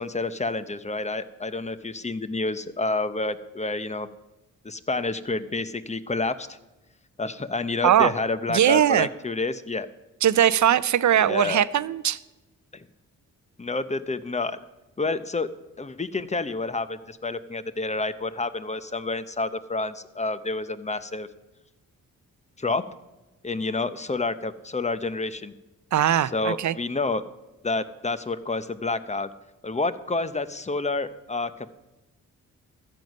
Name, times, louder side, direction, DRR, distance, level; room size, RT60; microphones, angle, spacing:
voice 1, 0.0-4.1 4.6-6.6 7.2-9.9 11.2-11.6 12.7-12.9 13.6-14.6 15.0-15.5 15.8-21.3 22.6-22.8 23.4-25.5 26.3-27.2 27.6-29.3 29.6-31.7, left 3 dB, 20° left, 0.8 m, -29 dB
voice 2, 8.5-9.1 10.2-12.2 25.9-26.7, right 10 dB, 60° right, 0.6 m, -20 dB
14.0 x 8.0 x 5.4 m
cardioid pair, 60°, 34 cm